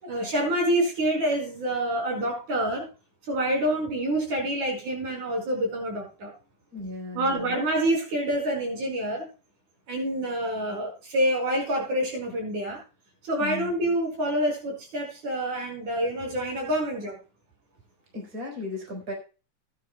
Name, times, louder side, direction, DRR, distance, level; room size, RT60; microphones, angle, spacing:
voice 1, 0.0-2.9 3.3-6.3 7.1-9.3 9.9-12.8 13.2-17.2, right 1 dB, 75° right, 1 dB, 6.5 m, -27 dB
voice 2, 6.7-7.6 13.4-13.7 18.1-19.1, left 2 dB, 30° right, 1 dB, 4.7 m, -36 dB
18.5 x 10.5 x 2.3 m, 0.33 s
omnidirectional pair, 3.4 m